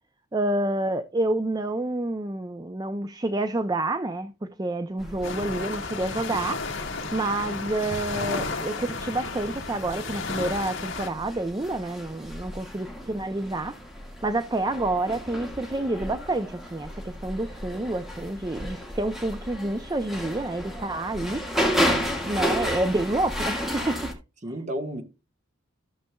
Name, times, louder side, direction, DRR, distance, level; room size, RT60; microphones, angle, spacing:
voice 1, 0.3-4.3 4.6-6.6 7.1-13.8 14.2-21.4 22.3-24.0, right 2 dB, 20° right, 0.4 m, -28 dB
sound 1, 5.0-24.1, equal, ahead, 1.6 m, -33 dB
sound 2, 5.2-11.1, left 3 dB, 65° left, 1.6 m, -33 dB
voice 2, 24.4-25.0, equal, 35° right, 1.3 m, -33 dB
14.0 x 6.6 x 2.2 m
head